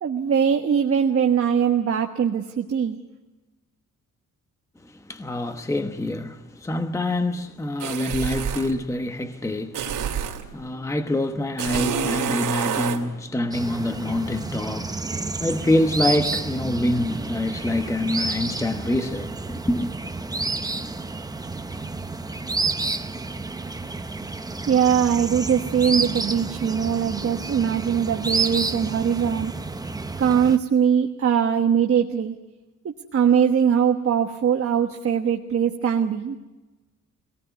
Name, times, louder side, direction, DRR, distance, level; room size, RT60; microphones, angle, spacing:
voice 1, 0.0-3.0 24.7-29.5 30.2-32.3 33.1-36.4, right 8 dB, 45° right, 1.4 m, -21 dB
voice 2, 4.8-19.9, left 1 dB, 10° left, 1.1 m, -26 dB
sound 1, 7.8-8.7 9.7-10.5 11.6-13.0, right 8 dB, 85° right, 3.0 m, -27 dB
sound 2, 13.5-30.6, right 3 dB, 10° right, 0.9 m, -30 dB
25.0 x 18.5 x 9.3 m
wide cardioid pair, 155°, 31 cm